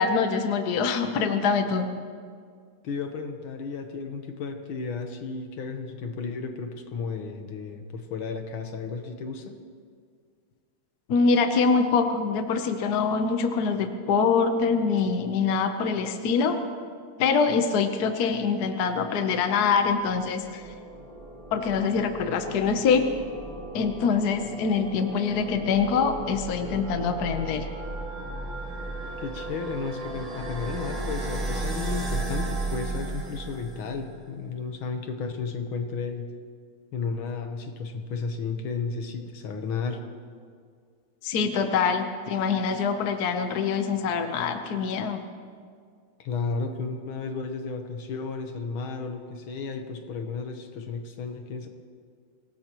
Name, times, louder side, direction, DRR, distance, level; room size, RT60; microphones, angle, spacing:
voice 1, 0.0-1.9 11.1-16.6 17.2-20.6 21.5-23.1 23.7-27.6 41.2-45.2, left 5 dB, 55° left, 7 dB, 1.3 m, -24 dB
voice 2, 2.8-9.6 29.2-36.3 36.9-40.0 46.2-51.7, left 5 dB, 80° left, 5 dB, 2.0 m, -33 dB
sound 1, 19.9-34.1, right 2 dB, 90° right, 5.5 m, -35 dB
25.0 x 18.0 x 3.0 m, 2.1 s
omnidirectional pair, 2.3 m